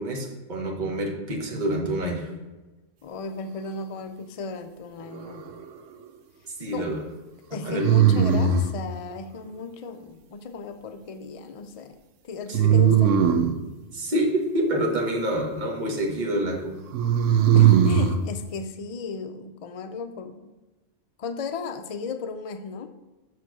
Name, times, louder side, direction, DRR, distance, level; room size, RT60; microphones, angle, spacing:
voice 1, 0.0-2.3 6.4-7.0 7.6-8.0 12.5-12.8 13.9-16.8, right 1 dB, 40° right, -1 dB, 1.4 m, -27 dB
voice 2, 3.0-5.4 6.7-6.9 7.5-12.0 12.2-13.1 17.5-20.5 21.2-22.9, left 4 dB, 70° left, 7 dB, 0.3 m, -35 dB
sound 1, 5.1-5.8 7.8-8.8 12.5-13.6 16.9-18.2, right 8 dB, 80° right, 1.0 m, -19 dB
6.5 x 4.8 x 6.0 m, 1.1 s
omnidirectional pair, 1.3 m